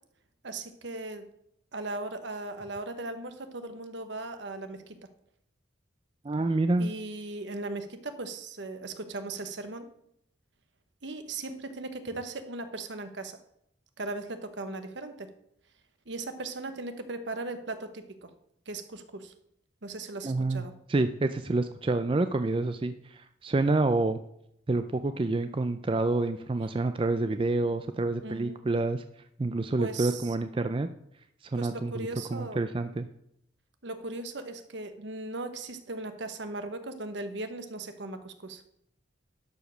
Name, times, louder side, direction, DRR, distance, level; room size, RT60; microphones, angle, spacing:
voice 1, 0.4-1.3 1.7-5.0 6.8-9.9 11.0-13.4 14.0-15.3 16.1-18.3 18.7-19.3 19.8-20.7 28.2-28.6 29.8-30.2 31.6-32.6 33.8-38.6, right 2 dB, 70° right, 9 dB, 1.1 m, -38 dB
voice 2, 6.2-6.9 20.2-24.2 24.7-29.0 29.4-30.9 31.5-33.1, right 2 dB, 30° right, 9 dB, 0.4 m, -28 dB
12.0 x 5.0 x 6.1 m, 0.74 s
head